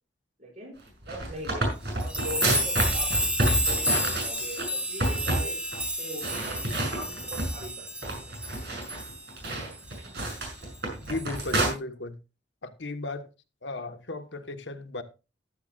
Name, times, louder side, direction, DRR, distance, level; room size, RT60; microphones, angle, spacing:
voice 1, 0.4-0.8 1.1-3.3 3.6-7.9 8.1-8.2, right 1 dB, 40° right, 6.7 m, -41 dB
sound 1, 0.9-4.6 5.0-5.5 5.7-5.8 6.2-7.6 8.0-11.7, right 1 dB, 60° right, 6.4 m, -29 dB
sound 2, 2.0-9.8 10.2-10.3 11.2-11.7, equal, 5° right, 2.1 m, -31 dB
voice 2, 11.1-12.2 12.6-13.3 13.6-15.0, left 2 dB, 75° left, 1.3 m, -35 dB
15.0 x 11.0 x 2.4 m
head